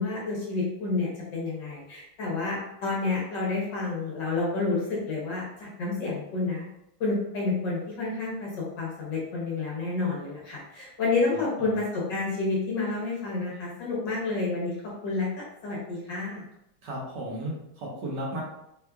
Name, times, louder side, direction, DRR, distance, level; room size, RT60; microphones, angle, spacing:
voice 1, 0.0-6.7 7.0-8.5 8.8-14.8 15.0-15.3 15.6-16.4, left 3 dB, 65° left, -5 dB, 1.4 m, -29 dB
voice 2, 16.8-18.4, right 1 dB, 60° right, -3 dB, 1.4 m, -34 dB
4.4 x 2.3 x 2.3 m, 0.82 s
omnidirectional pair, 2.3 m